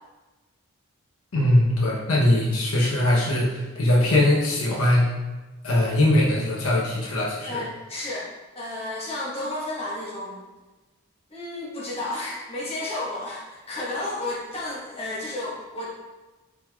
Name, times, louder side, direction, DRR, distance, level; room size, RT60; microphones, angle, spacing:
voice 1, 1.3-5.1 5.6-7.6, left 1 dB, 80° left, -4 dB, 0.7 m, -21 dB
voice 2, 7.5-8.3 8.5-10.4 11.3-15.9, left 2 dB, 25° left, -7 dB, 1.0 m, -32 dB
4.4 x 3.8 x 2.2 m, 1.2 s
head